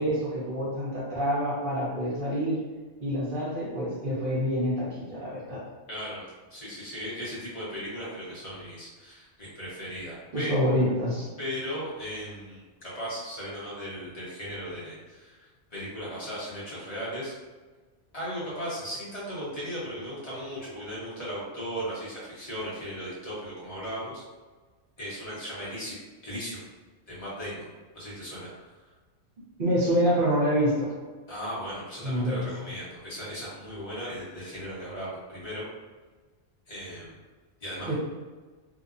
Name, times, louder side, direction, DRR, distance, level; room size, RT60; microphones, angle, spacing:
voice 1, 0.0-2.6 3.0-5.6 10.3-11.3 29.6-30.9 32.0-32.5 37.9-38.0, equal, 50° right, -6 dB, 0.9 m, -27 dB
voice 2, 5.9-6.2 6.5-10.5 11.4-17.3 18.1-24.2 25.0-26.0 26.2-26.6 27.1-27.7 27.9-28.7 31.3-35.6 36.7-37.2 37.6-37.9, equal, 35° left, -9 dB, 1.0 m, -37 dB
2.8 x 2.1 x 2.5 m, 1.3 s
omnidirectional pair, 1.2 m